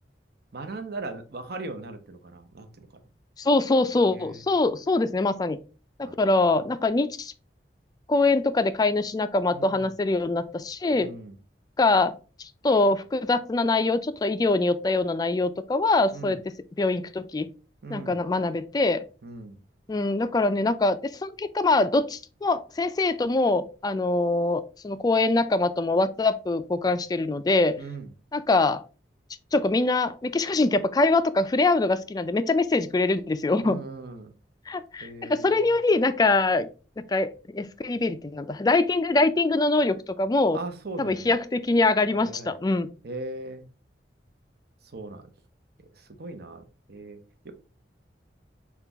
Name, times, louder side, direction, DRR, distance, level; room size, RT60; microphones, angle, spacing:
voice 1, 0.5-3.0 4.1-4.4 6.0-6.5 9.5-9.9 10.9-11.4 16.1-16.4 17.8-18.2 19.2-19.6 27.8-28.1 33.6-34.3 35.0-35.7 40.5-41.4 42.1-42.6 43.0-43.7 44.9-45.3 46.0-47.5, right 2 dB, 60° right, 0.7 m, -39 dB
voice 2, 3.4-5.6 6.0-7.3 8.1-11.1 11.8-12.1 12.6-17.5 17.9-19.0 19.9-27.8 28.3-28.8 29.5-33.8 34.7-36.7 37.0-40.6 41.0-42.9, left 2 dB, 20° left, 0.3 m, -23 dB
5.7 x 2.4 x 3.4 m
head